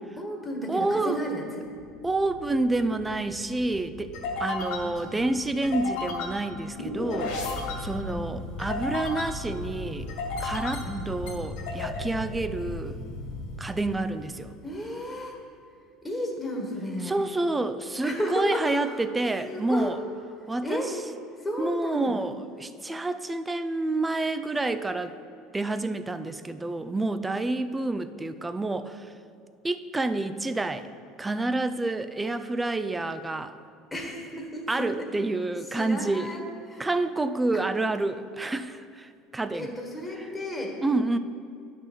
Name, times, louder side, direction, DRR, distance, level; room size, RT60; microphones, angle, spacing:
voice 1, 0.2-1.7 4.8-5.3 8.0-8.3 10.8-11.1 14.6-15.3 16.0-17.1 18.0-19.0 19.4-19.9 20.6-20.9 21.4-22.3 33.9-35.1 35.7-36.9 37.5-37.6 39.5-40.8, equal, 10° left, 0 dB, 1.5 m, -33 dB
voice 2, 0.7-1.2 2.0-7.4 7.8-10.1 10.4-13.0 13.6-14.5 17.0-20.0 20.5-20.8 21.6-25.1 25.5-29.1 29.6-30.9 31.2-33.5 34.7-36.3 36.8-39.7 40.8-41.2, right 2 dB, 15° right, 11 dB, 0.4 m, -28 dB
sound 1, 1.8-14.5, left 3 dB, 70° left, 2.1 m, -35 dB
10.0 x 5.9 x 4.3 m, 2.4 s
hypercardioid pair, 85°, 0 cm